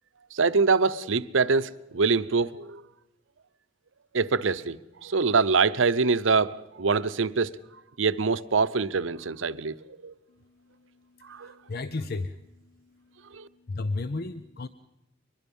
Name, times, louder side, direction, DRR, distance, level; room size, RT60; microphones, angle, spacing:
voice 1, 0.3-2.8 4.1-7.6 8.0-9.7 10.0-10.1 11.3-11.5 13.3-13.5, right 4 dB, 80° right, 0.7 m, -24 dB
voice 2, 11.3-12.4 13.7-14.7, left 3 dB, 55° left, 0.6 m, -33 dB
23.5 x 21.5 x 5.4 m
head